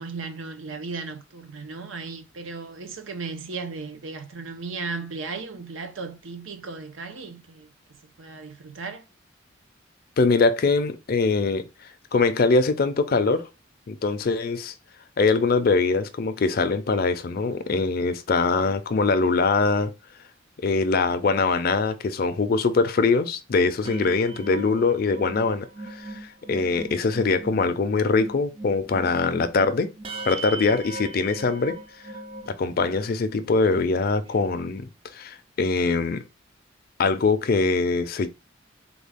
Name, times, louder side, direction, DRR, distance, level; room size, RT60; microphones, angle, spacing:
voice 1, 0.0-7.7 8.2-9.1, right 4 dB, 85° right, 0.7 m, -36 dB
voice 2, 10.2-11.6 12.1-13.5 13.9-14.7 15.2-19.9 20.6-29.9 30.3-31.8 32.5-36.2 37.0-38.3, left 4 dB, 50° left, 0.4 m, -23 dB
sound 1, 23.8-33.2 33.7-33.8 34.1-34.4, right 2 dB, 30° right, 0.4 m, -39 dB
3.7 x 2.3 x 3.4 m
head